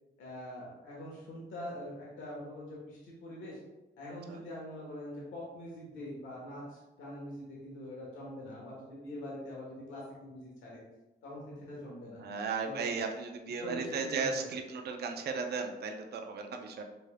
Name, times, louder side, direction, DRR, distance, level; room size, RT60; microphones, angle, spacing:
voice 1, 0.2-3.6 4.0-10.8 11.2-12.2 12.6-13.0 13.6-14.4, left 1 dB, 80° left, -5 dB, 1.2 m, -44 dB
voice 2, 12.2-16.8, right 5 dB, 55° right, 4 dB, 0.6 m, -35 dB
5.2 x 3.3 x 2.2 m, 1.0 s
cardioid pair, 90°, 20 cm